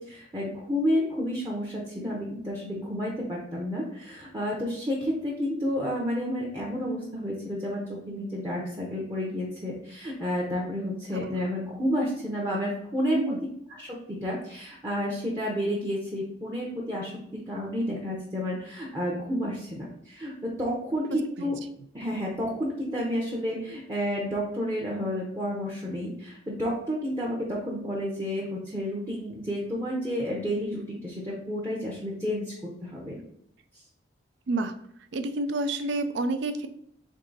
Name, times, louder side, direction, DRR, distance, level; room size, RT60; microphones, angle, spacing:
voice 1, 0.0-13.3 13.7-21.6 21.9-33.2, equal, 20° right, -3 dB, 0.7 m, -31 dB
voice 2, 35.1-36.7, right 2 dB, 65° right, 9 dB, 0.4 m, -29 dB
3.7 x 3.6 x 3.9 m, 0.71 s
head